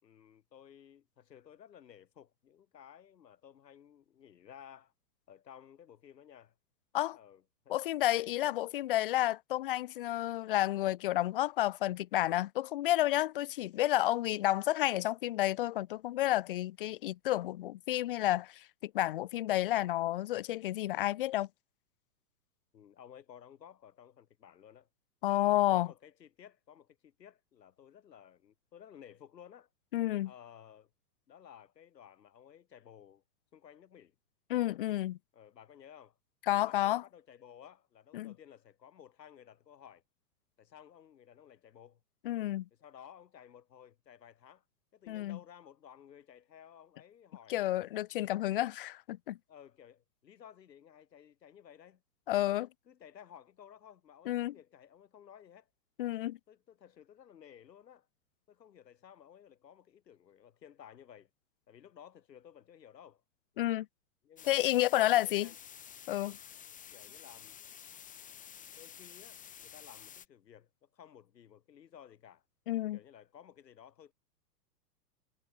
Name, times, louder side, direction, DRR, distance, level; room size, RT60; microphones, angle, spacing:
voice 1, 0.0-4.9 5.3-6.5 7.1-7.7 22.7-24.9 25.3-29.7 30.2-30.9 31.3-33.2 33.5-34.1 35.3-36.2 36.5-40.0 40.6-42.0 42.7-44.6 44.9-47.7 49.5-52.0 52.4-55.7 56.5-58.1 58.5-61.3 61.7-63.2 64.2-65.6 66.2-66.4 66.9-67.6 68.7-72.4 72.9-74.1, left 9 dB, 85° left, 6.3 m, -56 dB
voice 2, 7.7-21.5 25.2-25.9 29.9-30.3 34.5-35.2 36.5-37.0 38.1-38.3 42.2-42.7 45.1-45.4 47.5-49.4 52.3-52.7 54.3-54.5 56.0-56.4 63.6-63.9 64.5-65.5 66.1-66.3 72.7-73.0, left 15 dB, 35° left, 0.5 m, -30 dB
sound 1, 64.4-70.3, left 9 dB, 15° left, 3.8 m, -51 dB
hypercardioid pair, 150°, 49 cm